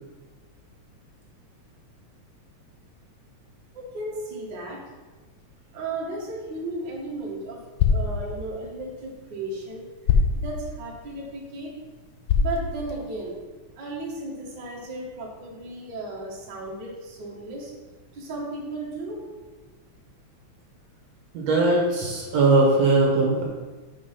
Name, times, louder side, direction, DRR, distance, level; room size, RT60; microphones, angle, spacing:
voice 1, 3.7-4.8 5.7-7.6 7.9-9.9 10.4-11.7 12.4-13.3 13.8-17.7 18.1-19.2, right 2 dB, 45° right, -4 dB, 1.9 m, -34 dB
sound 1, 6.5-13.4, left 5 dB, 75° left, 1.3 m, -28 dB
voice 2, 21.3-23.4, right 2 dB, 65° right, -2 dB, 2.4 m, -20 dB
6.0 x 5.9 x 5.7 m, 1.3 s
omnidirectional pair, 3.4 m